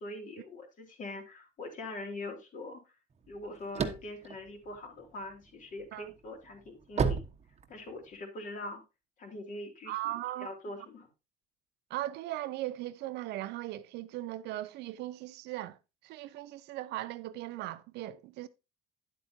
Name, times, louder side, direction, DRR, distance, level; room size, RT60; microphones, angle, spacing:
voice 1, 0.0-2.8 3.3-7.2 7.7-8.8 9.2-10.1 10.4-11.1, left 2 dB, 50° left, 3.7 m, -43 dB
sound 1, 3.2-5.4 5.9-8.2, right 5 dB, 40° right, 1.2 m, -32 dB
voice 2, 9.9-10.5 11.9-15.8 16.0-18.5, right 15 dB, 85° right, 0.8 m, -38 dB
10.5 x 8.3 x 2.8 m
cardioid pair, 110°, 17 cm